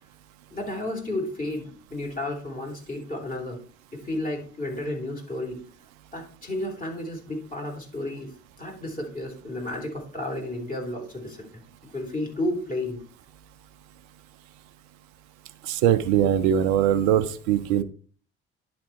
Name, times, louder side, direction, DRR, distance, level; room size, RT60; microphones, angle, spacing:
voice 1, 0.5-3.6 3.9-5.6 6.1-13.0, left 1 dB, 25° left, 1 dB, 3.2 m, -32 dB
voice 2, 15.7-17.8, right 10 dB, 65° right, 12 dB, 0.8 m, -21 dB
10.5 x 4.2 x 4.6 m, 0.43 s
figure-of-eight pair, 50°, 36 cm